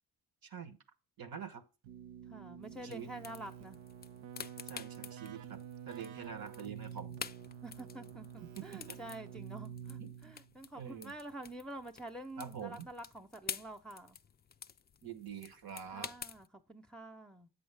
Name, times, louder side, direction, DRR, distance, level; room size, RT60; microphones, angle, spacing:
voice 1, 0.4-0.8 1.2-1.6 2.8-3.1 4.7-7.2 8.6-9.0 10.0-10.3 10.7-11.1 12.4-12.9 15.0-16.1, right 7 dB, 50° right, 1.1 m, -46 dB
Keyboard (musical), 1.8-10.5, right 9 dB, 75° right, 0.8 m, -48 dB
voice 2, 2.3-3.8 7.6-14.2 15.9-17.5, right 1 dB, ahead, 0.8 m, -48 dB
sound 1, 2.6-16.5, left 7 dB, 25° left, 0.4 m, -50 dB
7.8 x 5.6 x 3.4 m
supercardioid pair, 50°, 46 cm